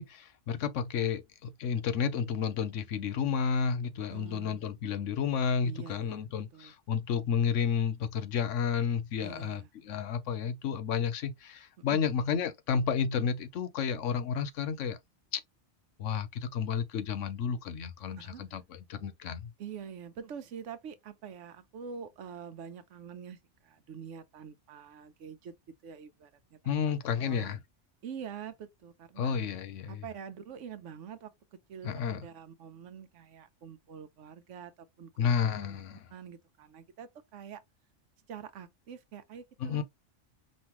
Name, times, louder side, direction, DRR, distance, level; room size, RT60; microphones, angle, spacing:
voice 1, 0.0-15.0 15.3-15.4 16.0-18.6 18.9-19.5 26.7-27.6 29.2-30.0 31.8-32.2 35.2-36.0 39.6-39.8, left 7 dB, 85° left, 1.1 m, -31 dB
voice 2, 4.1-4.6 5.6-6.7 9.2-9.7 11.9-12.0 18.2-18.4 19.6-25.5 25.8-27.6 28.0-29.4 29.9-31.3 31.7-34.7 35.0-35.8 36.1-37.6 38.3-39.8, right 7 dB, 85° right, 1.1 m, -46 dB
5.3 x 2.6 x 2.9 m
omnidirectional pair, 1.2 m